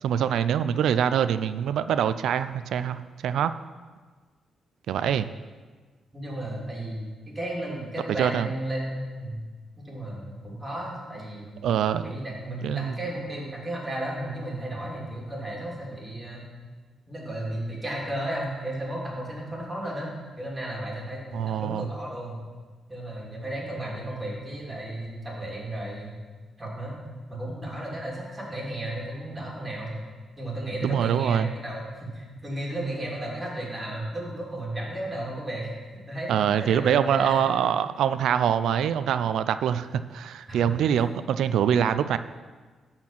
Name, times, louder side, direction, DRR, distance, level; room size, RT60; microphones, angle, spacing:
voice 1, 0.0-3.5 4.9-5.3 8.2-8.5 11.6-12.1 12.6-12.9 21.3-21.9 30.8-31.5 36.3-42.2, right 9 dB, 85° right, 12 dB, 0.4 m, -24 dB
voice 2, 6.1-9.4 9.8-11.7 12.0-16.4 17.1-20.1 20.4-22.4 22.9-26.1 26.6-26.9 27.3-29.9 30.4-37.4 40.5-41.0, right 1 dB, 15° right, -4 dB, 3.1 m, -34 dB
12.0 x 4.4 x 7.5 m, 1.4 s
cardioid pair, 120°, 0 cm